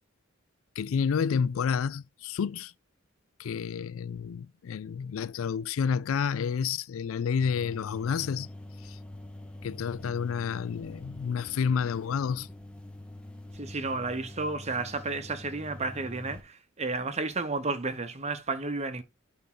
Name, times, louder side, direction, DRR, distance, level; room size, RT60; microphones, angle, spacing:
voice 1, 0.8-2.7 3.4-8.5 8.8-9.0 9.6-12.5, left 6 dB, 85° left, 0.4 m, -30 dB
sound 1, 7.4-16.4, left 1 dB, 5° left, 1.0 m, -45 dB
voice 2, 13.5-19.0, right 3 dB, 35° right, 1.1 m, -32 dB
10.5 x 3.6 x 3.8 m
head